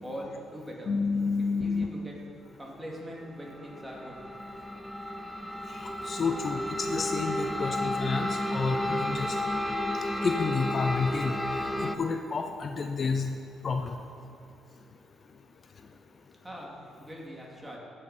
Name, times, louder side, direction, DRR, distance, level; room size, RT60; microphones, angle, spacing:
voice 1, 0.0-0.9 1.5-2.1 2.6-4.2 16.4-17.8, equal, 15° right, -2 dB, 2.4 m, -41 dB
voice 2, 0.9-1.9 5.8-9.4 10.2-11.4 11.8-13.3 13.6-14.0, left 4 dB, 45° left, 5 dB, 0.6 m, -30 dB
sound 1, 3.4-12.0, left 1 dB, 5° left, 0.6 m, -32 dB
15.0 x 6.7 x 4.3 m, 2.6 s
cardioid pair, 90°, 0 cm